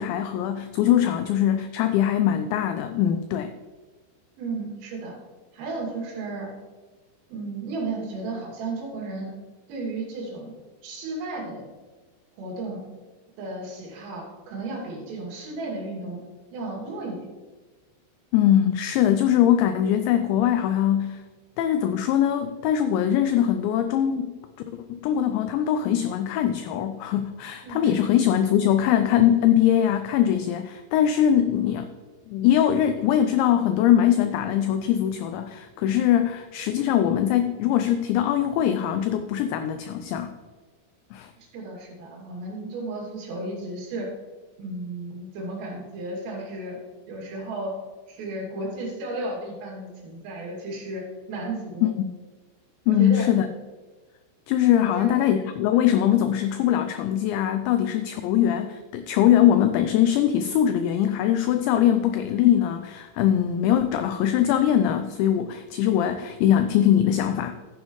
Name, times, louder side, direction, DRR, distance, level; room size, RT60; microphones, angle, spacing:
voice 1, 0.0-3.5 18.3-21.2 21.6-24.4 24.7-31.9 32.3-40.4 41.1-41.3 52.0-52.1 52.9-53.5 54.5-67.6, left 10 dB, 90° left, 9 dB, 2.5 m, -22 dB
voice 2, 4.4-5.2 5.5-6.5 7.3-9.3 9.7-10.5 10.8-11.7 12.4-12.8 13.4-16.2 16.5-17.3 27.6-28.0 41.4-44.1 44.6-46.8 47.1-47.8 48.1-51.9 52.9-53.3 54.8-55.3, right 2 dB, 85° right, -2 dB, 5.2 m, -34 dB
12.5 x 8.9 x 3.1 m, 1.3 s
omnidirectional pair, 5.7 m